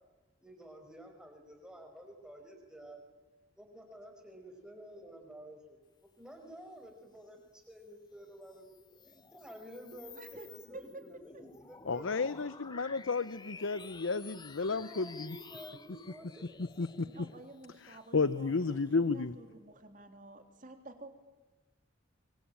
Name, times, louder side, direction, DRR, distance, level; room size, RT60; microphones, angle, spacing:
voice 1, 0.4-3.0 3.6-5.8 6.2-12.1 14.1-14.3 14.7-16.4 18.5-18.7, right 1 dB, 5° right, 4 dB, 5.4 m, -51 dB
sound 1, 8.3-19.2, left 4 dB, 20° left, 1.0 m, -53 dB
voice 2, 9.9-11.1 17.0-21.1, right 2 dB, 40° right, 6 dB, 3.4 m, -51 dB
voice 3, 11.8-15.4 16.6-17.1 17.8-19.3, left 4 dB, 70° left, 15 dB, 0.8 m, -32 dB
24.5 x 24.0 x 9.0 m, 1.2 s
head